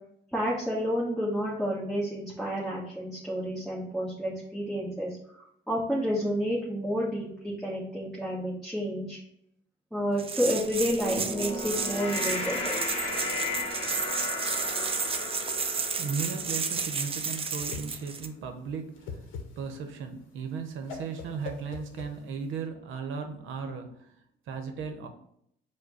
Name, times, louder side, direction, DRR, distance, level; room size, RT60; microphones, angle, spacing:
voice 1, 0.3-9.2 9.9-12.8, equal, ahead, -8 dB, 1.3 m, -30 dB
sound 1, 10.2-18.3, right 5 dB, 30° right, 0.5 m, -32 dB
sound 2, 10.6-17.2, left 2 dB, 30° left, 1.1 m, -35 dB
voice 2, 15.6-19.3 19.6-24.1 24.5-25.1, right 5 dB, 85° right, 6 dB, 0.8 m, -36 dB
Whoosh swoosh swish, 17.2-22.6, left 5 dB, 90° left, 0.7 m, -43 dB
4.9 x 2.2 x 4.6 m, 0.72 s
cardioid pair, 90°, 20 cm